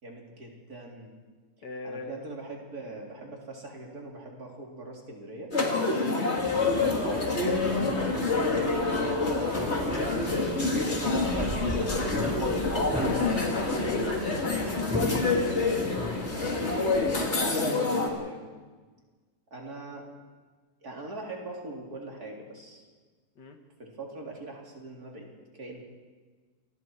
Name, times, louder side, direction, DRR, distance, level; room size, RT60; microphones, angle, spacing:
voice 1, 0.0-1.1 1.8-5.5 6.5-10.4 11.2-12.5 16.3-17.3 17.7-18.5 19.5-20.1 20.8-22.8 23.8-25.8, right 2 dB, 55° right, -1 dB, 4.1 m, -43 dB
voice 2, 1.6-2.1 5.9-6.2 12.9-15.4 17.8-18.0 23.4-23.6, left 4 dB, 70° left, 5 dB, 2.3 m, -39 dB
sound 1, 5.5-18.1, left 3 dB, 35° left, 2.9 m, -27 dB
sound 2, 6.3-17.3, equal, 5° right, 3.7 m, -37 dB
28.0 x 20.0 x 4.7 m, 1.4 s
omnidirectional pair, 1.9 m